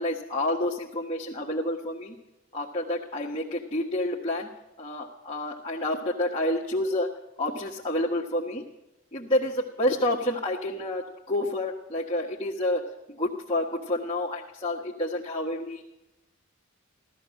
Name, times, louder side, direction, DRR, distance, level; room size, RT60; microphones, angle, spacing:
voice 1, 0.0-2.2 2.5-4.5 4.8-7.1 7.4-8.6 9.1-12.8 13.1-15.8, left 1 dB, 25° left, -5 dB, 1.5 m, -29 dB
16.5 x 13.5 x 6.5 m, 0.95 s
head